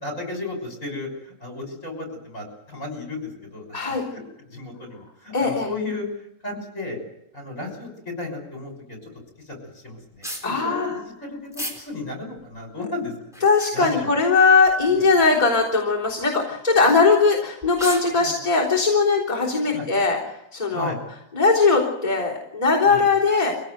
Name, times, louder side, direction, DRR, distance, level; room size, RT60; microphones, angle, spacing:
voice 1, 0.0-4.2 4.5-6.1 6.4-7.0 7.3-7.9 8.2-8.7 9.0-9.1 9.8-11.5 11.8-13.1 13.7-14.1 14.9-15.0 18.2-18.4 19.7-19.8 20.7-21.0 22.9-23.0, left 2 dB, 40° left, 3 dB, 6.4 m, -33 dB
voice 2, 3.7-4.0 5.3-5.7 10.4-11.0 13.4-20.2 20.5-20.9 21.3-23.5, left 4 dB, 20° left, -5 dB, 3.6 m, -19 dB
sound 1, 10.1-10.5 11.5-11.8 12.4-12.5 13.2-13.9 14.6-14.9 15.2-15.3 16.0-16.2 17.2-17.3 17.6-18.2, equal, ahead, 4.6 m, -34 dB
24.5 x 17.0 x 8.0 m, 0.83 s
omnidirectional pair, 2.1 m